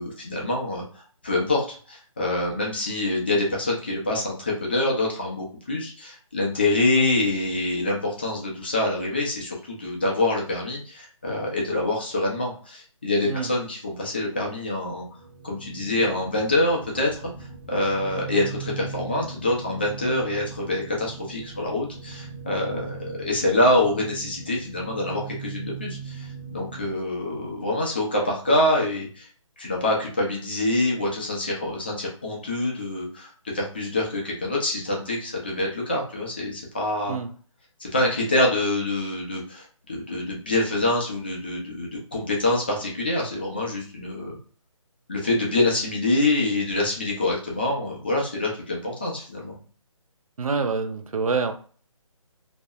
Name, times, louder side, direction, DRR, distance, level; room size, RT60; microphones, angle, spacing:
voice 1, 0.0-15.0 15.4-17.2 17.7-29.3 29.6-33.3 33.5-37.2 37.8-44.4 45.1-49.6, left 2 dB, 20° left, -2 dB, 0.3 m, -25 dB
sound 1, 15.0-26.9, right 5 dB, 55° right, 0.8 m, -39 dB
voice 2, 50.4-51.5, right 4 dB, 85° right, 7 dB, 0.5 m, -26 dB
2.3 x 2.0 x 2.7 m, 0.42 s
hypercardioid pair, 160°, 17 cm